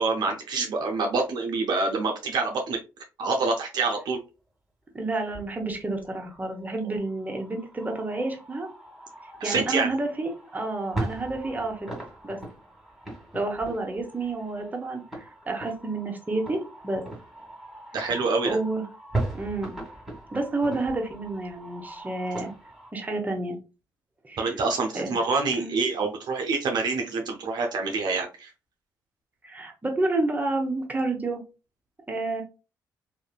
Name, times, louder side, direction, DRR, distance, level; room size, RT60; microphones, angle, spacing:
voice 1, 0.0-2.8 3.2-4.2 9.4-9.9 17.9-18.6 24.4-28.5, right 3 dB, 65° right, 2 dB, 0.5 m, -26 dB
voice 2, 4.9-8.7 9.4-11.9 12.2-12.4 13.3-17.0 18.4-18.8 19.3-19.8 20.3-22.5 22.9-23.6 24.2-24.5 24.9-25.2 25.6-25.7 29.4-31.4 32.1-32.4, right 2 dB, 20° right, 3 dB, 0.9 m, -30 dB
sound 1, 5.3-22.9, right 2 dB, ahead, 1.5 m, -39 dB
2.6 x 2.5 x 2.3 m, 0.31 s
hypercardioid pair, 45°, 8 cm